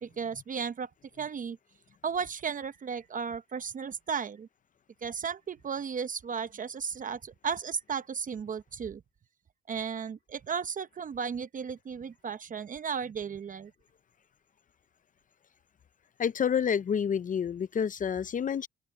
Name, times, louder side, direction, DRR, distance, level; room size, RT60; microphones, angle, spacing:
voice 1, 0.0-0.9 1.2-1.6 2.0-4.5 5.0-9.0 9.7-13.7, right 6 dB, 40° right, 0.8 m, -35 dB
voice 2, 16.2-18.7, left 7 dB, 40° left, 0.6 m, -28 dB
open air
cardioid pair, 90°, 20 cm